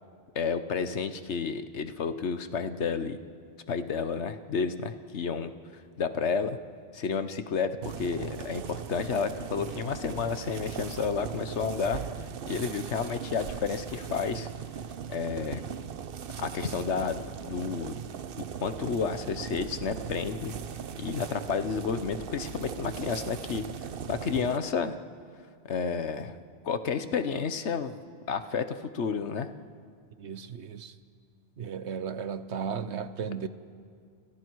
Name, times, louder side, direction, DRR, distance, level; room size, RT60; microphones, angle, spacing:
voice 1, 0.3-3.2 3.7-5.5 6.0-6.6 6.9-12.0 12.5-14.5 15.1-15.6 16.4-18.0 18.4-20.5 21.0-23.6 24.1-25.0 25.7-26.4 26.6-28.0 28.3-29.5, left 6 dB, 75° left, 10 dB, 1.3 m, -31 dB
sound 1, 7.8-24.6, right 7 dB, 55° right, 0.9 m, -39 dB
voice 2, 30.2-30.9 31.6-33.5, right 6 dB, 75° right, 12 dB, 1.2 m, -35 dB
30.0 x 30.0 x 4.7 m, 2.2 s
omnidirectional pair, 1.2 m